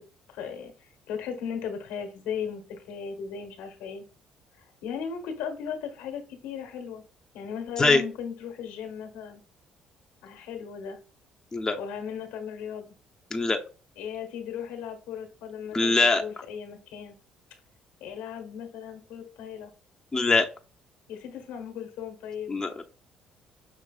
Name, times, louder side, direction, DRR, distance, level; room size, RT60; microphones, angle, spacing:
voice 1, 0.3-4.0 4.8-7.0 7.3-9.4 10.2-11.0 11.8-12.9 14.0-17.2 18.0-19.7 21.1-22.5, left 7 dB, 75° left, 5 dB, 1.2 m, -37 dB
voice 2, 15.7-16.2 20.1-20.5 22.5-22.9, left 3 dB, 25° left, 4 dB, 0.7 m, -22 dB
6.2 x 3.3 x 2.4 m, 0.35 s
hypercardioid pair, 55°, 2 cm